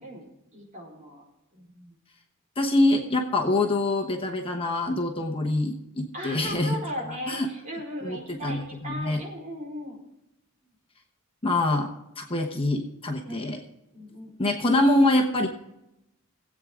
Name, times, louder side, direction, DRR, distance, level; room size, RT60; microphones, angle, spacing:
voice 1, 0.5-1.2 1.5-1.9 6.1-10.0 13.2-13.5 13.9-14.6, equal, 35° right, -3 dB, 4.5 m, -37 dB
voice 2, 2.6-6.8 7.3-7.5 8.0-9.2 11.4-11.9 12.2-13.6 14.4-15.5, left 2 dB, 25° left, 2 dB, 1.1 m, -25 dB
18.5 x 8.5 x 3.7 m, 0.86 s
head